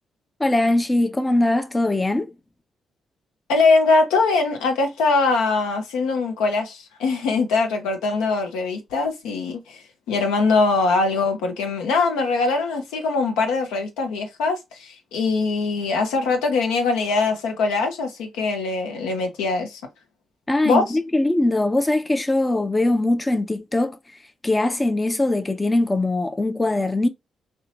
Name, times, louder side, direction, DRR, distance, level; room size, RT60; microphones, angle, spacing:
voice 1, 0.4-2.3 20.5-24.0 24.4-27.1, left 2 dB, 25° left, 0.5 m, -21 dB
voice 2, 3.5-9.8 10.1-19.8 20.6-20.8, left 3 dB, 85° left, 0.6 m, -22 dB
2.8 x 2.2 x 2.5 m
supercardioid pair, 45°, 0 cm